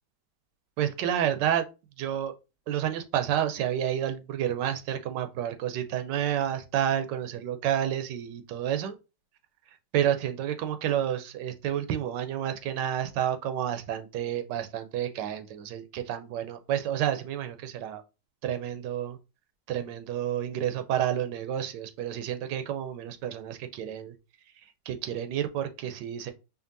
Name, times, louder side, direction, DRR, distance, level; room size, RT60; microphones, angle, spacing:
voice 1, 0.8-1.7 2.0-2.3 2.7-9.0 9.9-18.0 18.4-19.2 19.7-24.1 24.9-26.3, right 10 dB, 90° right, 1.3 m, -30 dB
5.2 x 2.4 x 2.6 m
omnidirectional pair, 1.8 m